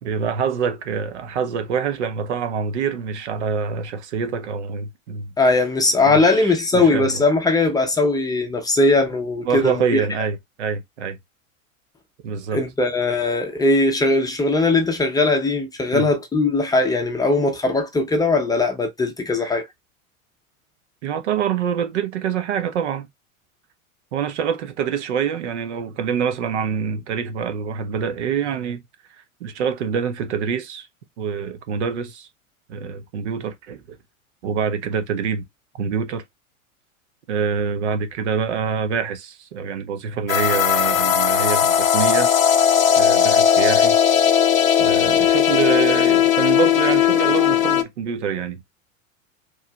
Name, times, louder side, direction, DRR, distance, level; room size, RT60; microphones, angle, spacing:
voice 1, 0.0-5.3 6.1-7.2 9.4-11.2 12.2-12.6 15.9-16.1 21.0-23.1 24.1-28.8 29.4-30.9 31.2-32.3 32.7-34.0 34.4-35.4 35.8-36.2 37.3-42.3 43.0-44.0 44.8-48.6, right 6 dB, 55° right, 0.8 m, -25 dB
voice 2, 5.4-10.0 12.5-19.6, left 2 dB, 10° left, 0.7 m, -19 dB
sound 1, 40.3-47.8, left 9 dB, 70° left, 0.7 m, -17 dB
4.6 x 3.0 x 2.3 m
figure-of-eight pair, 90°, 42 cm